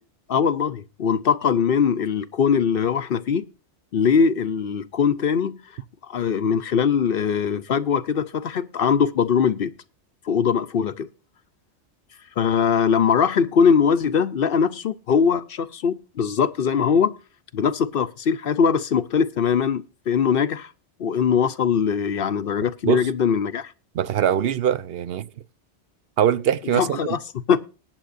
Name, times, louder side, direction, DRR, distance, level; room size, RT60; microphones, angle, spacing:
voice 1, 0.3-3.4 3.9-5.5 6.1-9.7 10.3-11.1 12.4-17.1 17.5-20.7 21.0-23.7 26.7-27.2 27.5-27.6, left 6 dB, 55° left, 0.8 m, -21 dB
voice 2, 23.9-25.3 26.2-27.0, right 9 dB, 60° right, 0.8 m, -22 dB
20.0 x 9.1 x 2.5 m
omnidirectional pair, 1.2 m